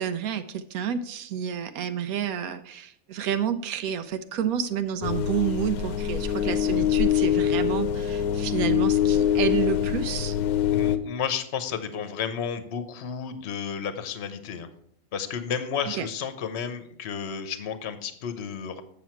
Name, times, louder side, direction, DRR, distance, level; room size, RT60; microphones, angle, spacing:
voice 1, 0.0-10.4 15.8-16.1, right 8 dB, 80° right, 10 dB, 1.0 m, -29 dB
sound 1, 5.0-11.0, left 10 dB, 85° left, 1.1 m, -24 dB
voice 2, 10.7-14.7 15.1-18.8, left 7 dB, 55° left, 10 dB, 1.0 m, -32 dB
7.7 x 7.1 x 4.4 m, 0.70 s
omnidirectional pair, 1.5 m